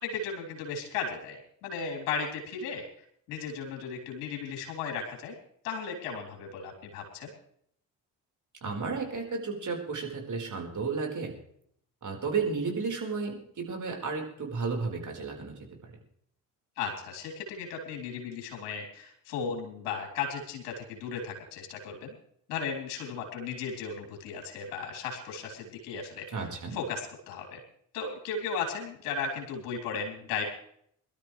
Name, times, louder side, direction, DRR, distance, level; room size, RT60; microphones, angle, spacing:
voice 1, 0.0-2.8 3.3-5.4 5.6-7.3 16.8-22.1 22.5-26.3 26.7-27.6 27.9-30.4, left 5 dB, 75° left, 1 dB, 3.6 m, -35 dB
voice 2, 8.6-11.3 12.0-15.9 26.3-26.8, right 4 dB, 40° right, 1 dB, 4.6 m, -33 dB
23.0 x 12.5 x 3.3 m, 0.66 s
hypercardioid pair, 50°, 46 cm